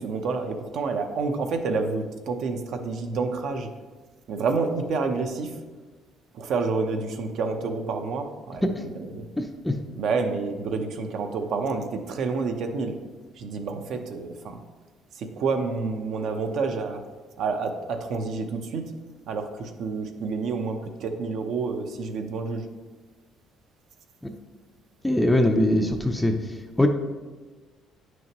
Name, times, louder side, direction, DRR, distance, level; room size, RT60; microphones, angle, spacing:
voice 1, 0.0-3.7 4.3-5.6 6.3-9.3 10.0-12.9 13.4-14.6 15.1-17.0 17.4-18.8 19.3-22.6, right 4 dB, 55° right, 5 dB, 0.8 m, -29 dB
voice 2, 9.4-9.7 24.2-24.3 25.0-26.3 26.8-26.9, left 1 dB, 5° left, 5 dB, 0.5 m, -21 dB
9.6 x 6.2 x 3.0 m, 1.3 s
cardioid pair, 160°, 0 cm